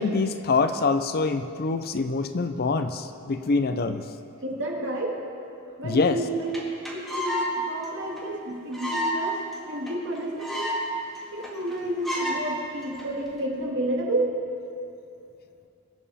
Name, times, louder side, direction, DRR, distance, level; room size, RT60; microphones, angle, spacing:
voice 1, 0.0-4.1 5.8-6.2, left 4 dB, 45° left, 9 dB, 0.5 m, -25 dB
voice 2, 4.4-5.2 5.8-6.6 6.9-10.7 11.3-14.3, right 1 dB, 55° right, -1 dB, 2.1 m, -30 dB
sound 1, 6.2-6.3 6.5-6.6 6.8-7.5 7.8-7.9 8.2-8.3 8.7-9.2 9.5-9.6 9.9-10.0 10.1-10.8 11.1-11.2 11.4-11.7 12.0-12.4 13.0-13.3, left 1 dB, ahead, 1.9 m, -29 dB
23.0 x 7.7 x 4.2 m, 2.6 s
head